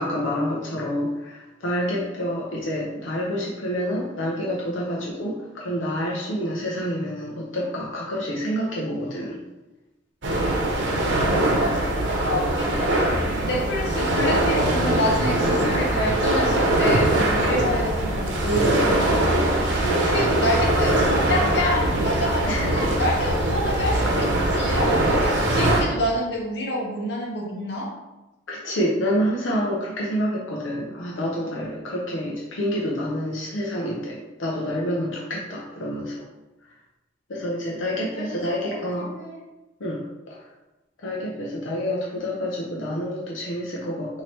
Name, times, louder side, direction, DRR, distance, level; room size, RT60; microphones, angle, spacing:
voice 1, 0.0-9.4 19.8-20.1 22.5-23.0 28.5-36.2 37.3-39.1 39.8-40.4 41.0-44.2, equal, 90° left, -4 dB, 0.7 m, -28 dB
sound 1, 10.2-25.8, right 1 dB, 75° right, 0.8 m, -22 dB
voice 2, 11.1-27.9 38.1-38.3 39.0-39.4, left 1 dB, 60° left, -3 dB, 1.0 m, -28 dB
3.1 x 2.8 x 4.4 m, 1.1 s
head